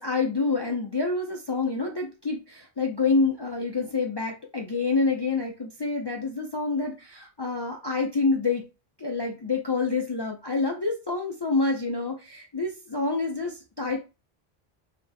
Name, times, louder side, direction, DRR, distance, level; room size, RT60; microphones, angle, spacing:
voice 1, 0.0-8.6 9.0-14.0, left 3 dB, 40° left, 1 dB, 0.3 m, -27 dB
3.4 x 2.1 x 4.0 m, 0.29 s
omnidirectional pair, 1.0 m